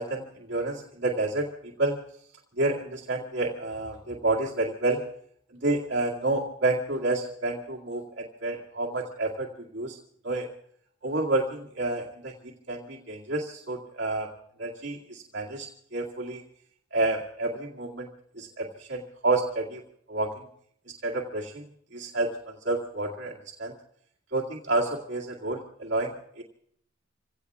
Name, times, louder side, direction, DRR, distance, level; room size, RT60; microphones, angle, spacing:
voice 1, 0.0-2.0 2.6-5.0 5.5-10.0 10.2-10.5 11.0-14.3 14.6-16.4 16.9-18.1 18.4-19.8 20.1-20.5 21.0-21.7 21.9-23.7 24.3-26.4, right 2 dB, 65° right, -3 dB, 2.1 m, -29 dB
27.5 x 17.0 x 2.4 m, 0.67 s
head